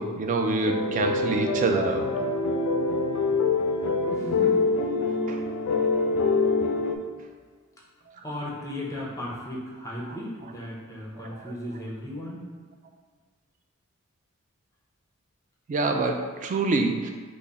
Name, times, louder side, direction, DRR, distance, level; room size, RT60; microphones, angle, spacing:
voice 1, 0.0-2.1 5.3-5.4 11.2-11.3 15.7-17.1, right 3 dB, 35° right, 4 dB, 0.3 m, -26 dB
sound 1, 0.6-7.0, left 3 dB, 85° left, 0.3 m, -25 dB
voice 2, 4.1-4.6 8.2-12.5, left 1 dB, 15° left, -4 dB, 0.6 m, -36 dB
3.5 x 2.0 x 3.9 m, 1.6 s
head